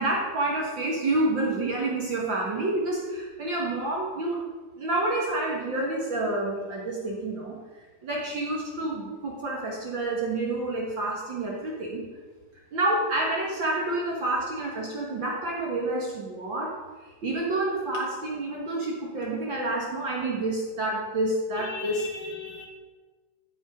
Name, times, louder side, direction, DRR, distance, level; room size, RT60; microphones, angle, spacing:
voice 1, 0.0-4.4 4.8-7.6 8.0-12.0 12.7-22.0, right 2 dB, 45° right, -3 dB, 1.7 m, -28 dB
voice 2, 21.6-22.7, left 4 dB, 85° left, 2 dB, 3.1 m, -38 dB
15.0 x 5.5 x 5.1 m, 1.3 s
omnidirectional pair, 3.6 m